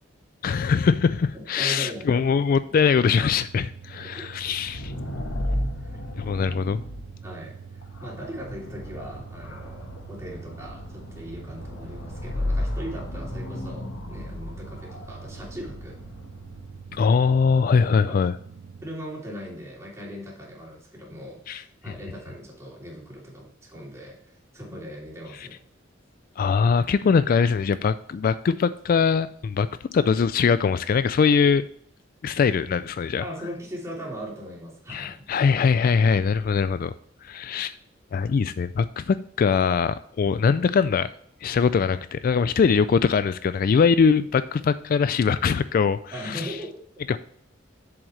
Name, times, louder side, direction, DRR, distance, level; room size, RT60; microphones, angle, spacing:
voice 1, 0.4-4.9 6.2-6.8 16.9-18.3 21.5-21.6 26.4-31.7 32.2-33.2 34.9-36.9 37.2-37.8 38.1-41.1 41.4-46.5 47.1-47.2, left 5 dB, 50° left, 14 dB, 0.3 m, -22 dB
voice 2, 1.3-2.3 4.0-4.2 5.0-5.5 5.8-6.5 7.2-7.6 8.0-16.0 18.1-18.2 18.8-25.6 33.2-35.2 46.1-46.7, equal, 15° right, -4 dB, 3.1 m, -39 dB
sound 1, 2.9-19.0, right 6 dB, 80° right, 0.7 m, -44 dB
sound 2, 4.4-16.9, left 1 dB, 85° left, 1.4 m, -34 dB
7.8 x 7.3 x 3.2 m, 0.65 s
head